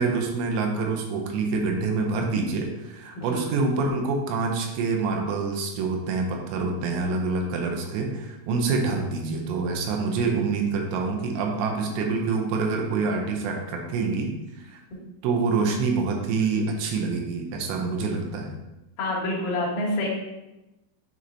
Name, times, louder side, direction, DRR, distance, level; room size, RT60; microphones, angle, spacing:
voice 1, 0.0-14.3 14.7-14.8 15.2-18.6, right 4 dB, 90° right, 2 dB, 3.0 m, -26 dB
voice 2, 19.0-20.1, left 1 dB, 65° left, -5 dB, 3.0 m, -27 dB
9.3 x 4.0 x 2.8 m, 0.99 s
omnidirectional pair, 5.0 m